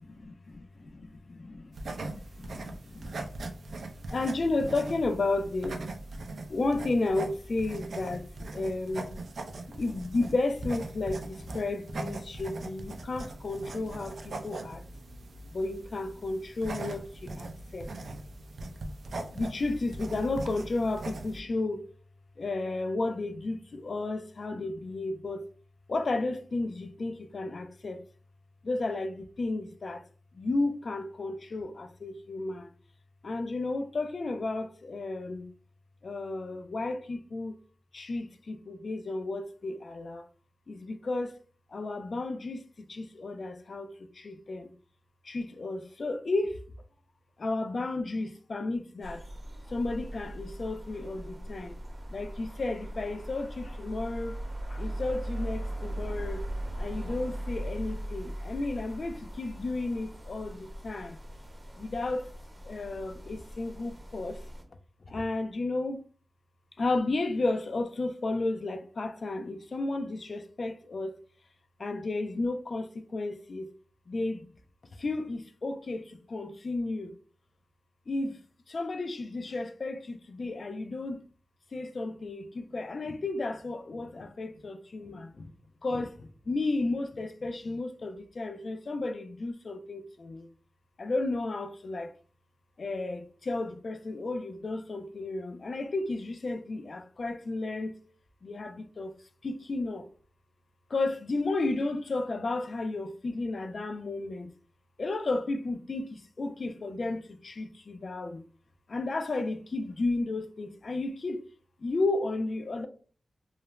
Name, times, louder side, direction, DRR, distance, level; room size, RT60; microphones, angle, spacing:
voice 1, 0.0-3.2 4.1-5.8 6.5-9.2 9.7-14.8 15.5-17.9 19.3-21.8 22.4-25.4 25.9-28.0 28.6-30.0 30.4-32.7 33.2-35.5 36.0-37.5 37.9-40.2 40.7-41.3 41.7-42.6 42.9-44.7 45.3-46.6 47.4-49.2 49.7-51.8 52.1-54.4 54.7-56.4 56.8-61.2 61.8-62.3 62.7-64.4 65.1-66.0 66.8-71.1 71.8-73.7 74.1-74.5 75.0-77.2 78.1-78.4 78.7-81.2 81.7-85.5 85.8-90.5 91.0-92.1 92.8-97.9 98.4-99.1 99.4-100.1 100.9-104.5 105.0-108.4 108.9-111.4 111.8-112.9, left 2 dB, 65° left, 0.3 m, -33 dB
sound 1, 1.7-21.4, right 2 dB, 85° right, 0.4 m, -40 dB
sound 2, 49.0-64.6, right 1 dB, 30° right, 0.8 m, -39 dB
2.4 x 2.0 x 3.0 m
cardioid pair, 65°, 0 cm